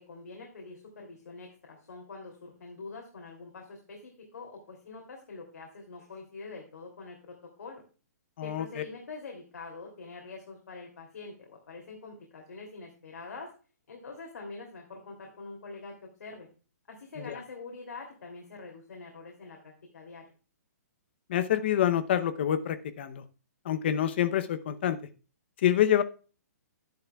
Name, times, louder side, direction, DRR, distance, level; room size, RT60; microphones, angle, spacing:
voice 1, 0.0-7.8 8.4-13.5 13.9-16.5 16.9-20.2, left 3 dB, 85° left, 1 dB, 2.8 m, -45 dB
voice 2, 8.4-8.8 17.3-17.4 21.3-23.2 23.6-25.0 25.6-26.0, left 10 dB, 40° left, 11 dB, 0.7 m, -26 dB
11.5 x 10.5 x 2.3 m, 0.36 s
hypercardioid pair, 170°, 9 cm